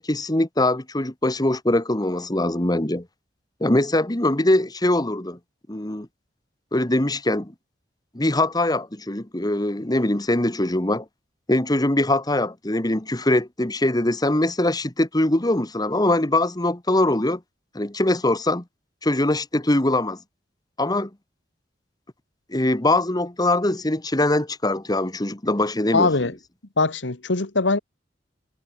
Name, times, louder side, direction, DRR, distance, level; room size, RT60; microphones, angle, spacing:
voice 1, 0.0-3.0 3.6-5.4 5.7-6.1 6.7-7.5 8.1-11.0 11.5-17.4 17.7-18.6 19.0-20.2 20.8-21.1 22.5-26.1, left 1 dB, 20° left, 1.5 m, -22 dB
voice 2, 25.9-26.3 26.8-27.8, left 3 dB, 85° left, 1.6 m, -21 dB
head